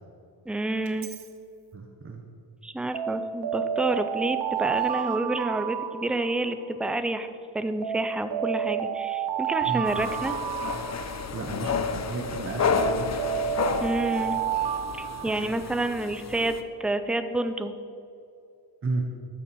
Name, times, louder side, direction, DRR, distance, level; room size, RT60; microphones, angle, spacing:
voice 1, 0.5-1.1 2.6-7.3 7.5-10.4 13.8-14.4 14.9-17.7, right 2 dB, ahead, 9 dB, 0.4 m, -29 dB
Alarm, 0.9-1.2 2.9-6.7 7.8-11.6 12.7-15.9, right 9 dB, 55° right, 1.1 m, -30 dB
voice 2, 1.7-2.2 9.6-9.9 11.3-12.8 13.1-13.2 15.3-15.4 18.8-19.0, right 3 dB, 25° right, 2 dB, 0.9 m, -33 dB
sound 1, 9.9-16.6, left 5 dB, 35° left, 0.6 m, -31 dB
13.0 x 7.1 x 6.1 m, 2.5 s
wide cardioid pair, 160°, 48 cm